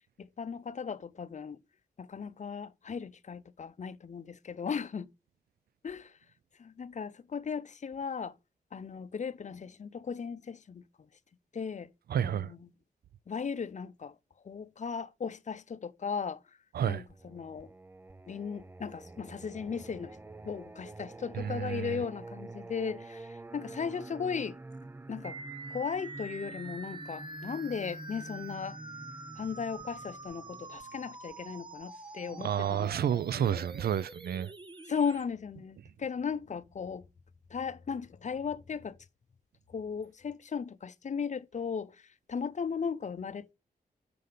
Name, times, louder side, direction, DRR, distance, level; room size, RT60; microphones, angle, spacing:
voice 1, 0.2-1.6 2.0-5.1 5.8-6.1 6.6-8.3 8.7-10.8 11.5-11.9 12.2-12.7 13.3-14.1 14.4-16.4 16.9-17.7 18.3-20.2 20.4-24.6 25.1-25.4 25.7-28.8 29.4-32.9 33.3-33.6 34.9-37.0 37.5-39.0 39.7-42.0 42.3-43.5, left 6 dB, 50° left, 0.7 m, -36 dB
voice 2, 12.1-12.5 16.7-17.0 21.3-22.0 32.3-34.5, right 9 dB, 80° right, 0.4 m, -30 dB
Singing, 17.1-31.8, right 2 dB, 15° right, 0.4 m, -48 dB
sound 1, 25.2-35.2, right 3 dB, 30° right, 1.0 m, -46 dB
6.8 x 5.6 x 5.0 m
cardioid pair, 65°, 16 cm